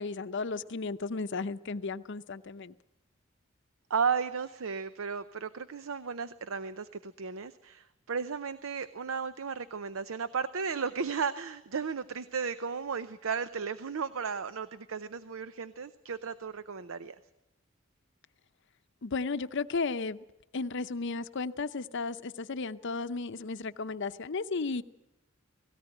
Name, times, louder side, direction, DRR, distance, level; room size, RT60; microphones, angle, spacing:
voice 1, 0.0-2.7 19.0-20.2 20.5-24.8, left 4 dB, 60° left, 13 dB, 0.7 m, -34 dB
voice 2, 3.9-17.2, right 6 dB, 75° right, 13 dB, 0.6 m, -34 dB
18.0 x 17.5 x 9.1 m, 0.93 s
head